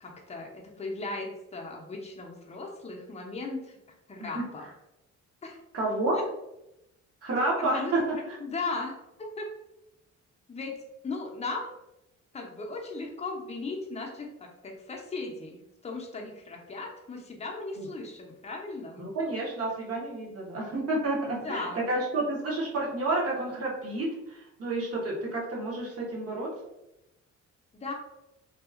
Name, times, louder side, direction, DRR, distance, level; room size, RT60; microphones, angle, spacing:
voice 1, 0.0-3.8 4.1-4.7 5.4-5.6 6.1-6.2 7.6-8.0 8.4-9.0 9.4-9.5 10.5-11.7 12.3-19.1 21.3-21.8 27.7-27.9, left 3 dB, 20° left, 0 dB, 0.6 m, -37 dB
voice 2, 5.7-6.2 7.2-8.4 17.8-17.9 19.0-26.5, right 2 dB, 50° right, -4 dB, 1.1 m, -30 dB
2.8 x 2.3 x 2.4 m, 0.89 s
cardioid pair, 90°, 30 cm